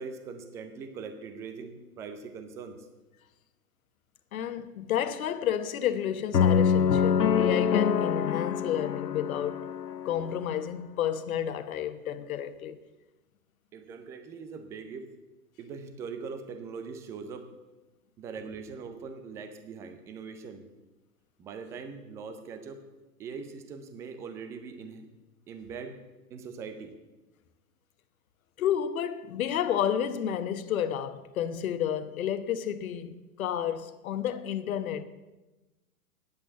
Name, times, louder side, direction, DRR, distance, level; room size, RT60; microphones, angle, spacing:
voice 1, 0.0-2.9 13.7-15.1 15.6-17.5 18.2-20.6 21.4-22.8 23.2-25.1 25.5-26.0 26.3-26.9, right 5 dB, 5° right, 0.3 m, -41 dB
voice 2, 4.3-9.7 10.0-12.8 28.6-35.0, left 9 dB, 60° left, 1.2 m, -31 dB
sound 1, 6.3-10.5, left 7 dB, 90° left, 0.7 m, -25 dB
10.0 x 8.5 x 8.1 m
figure-of-eight pair, 105°, 48 cm